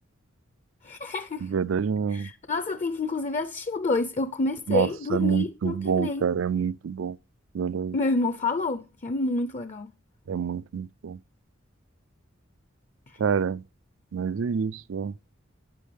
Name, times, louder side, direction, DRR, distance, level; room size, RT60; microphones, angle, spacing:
voice 1, 0.8-1.5 2.1-6.3 7.9-9.9, left 2 dB, 35° left, 0.6 m, -28 dB
voice 2, 1.4-2.3 4.7-7.2 7.5-8.0 10.3-11.2 13.2-13.6 14.1-15.1, right 6 dB, 75° right, 0.4 m, -27 dB
12.0 x 9.6 x 3.4 m
head